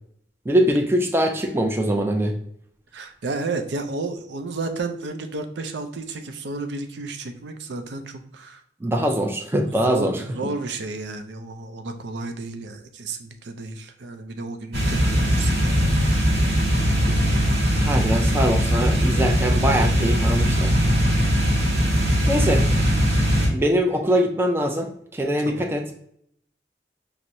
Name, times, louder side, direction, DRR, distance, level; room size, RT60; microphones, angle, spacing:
voice 1, 0.5-2.3 8.8-10.2 17.1-17.2 17.8-20.7 22.3-22.6 23.5-25.8, equal, 15° right, 3 dB, 0.3 m, -22 dB
voice 2, 2.9-8.6 9.6-15.8 22.3-22.5 25.4-25.7, right 3 dB, 80° right, 7 dB, 0.5 m, -32 dB
sound 1, 14.7-23.5, equal, 60° right, 1.0 m, -20 dB
6.0 x 2.0 x 2.6 m, 0.67 s
head